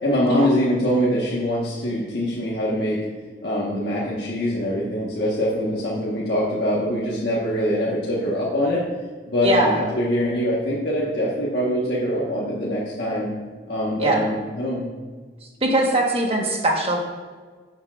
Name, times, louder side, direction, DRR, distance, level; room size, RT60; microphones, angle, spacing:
voice 1, 0.0-3.0 3.4-8.8 9.3-13.3 13.7-14.9, equal, 70° left, -6 dB, 1.3 m, -23 dB
voice 2, 9.4-9.8 14.0-14.2 15.4-17.0, right 1 dB, 35° right, 1 dB, 1.2 m, -21 dB
12.0 x 7.3 x 2.4 m, 1.5 s
head